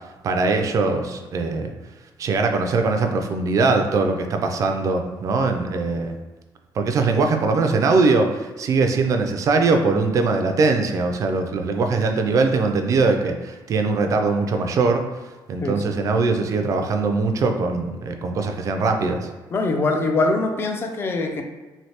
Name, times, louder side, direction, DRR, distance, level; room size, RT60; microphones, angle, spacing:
voice 1, 0.2-1.7 2.2-6.2 6.8-15.0 15.5-19.3, right 3 dB, 45° right, 5 dB, 0.3 m, -21 dB
voice 2, 19.5-21.4, left 3 dB, 30° left, 5 dB, 0.3 m, -22 dB
3.2 x 2.6 x 2.8 m, 1.2 s
cardioid pair, 155°, 8 cm